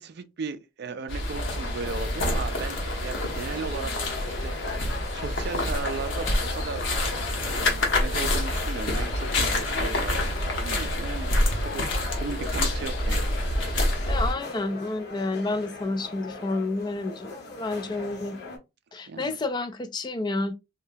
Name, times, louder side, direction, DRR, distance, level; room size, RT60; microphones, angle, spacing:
voice 1, 0.0-4.2 4.4-4.5 4.8-7.0 7.4-10.3 10.6-11.3 11.6-13.2 19.1-19.4, right 4 dB, 60° right, 0.4 m, -36 dB
sound 1, 1.1-14.3, left 1 dB, 85° left, 1.0 m, -27 dB
sound 2, 1.5-18.6, left 3 dB, 60° left, 1.0 m, -40 dB
voice 2, 12.2-12.5 14.1-18.4 18.9-20.5, left 2 dB, 25° left, 0.4 m, -30 dB
3.7 x 2.2 x 2.6 m
head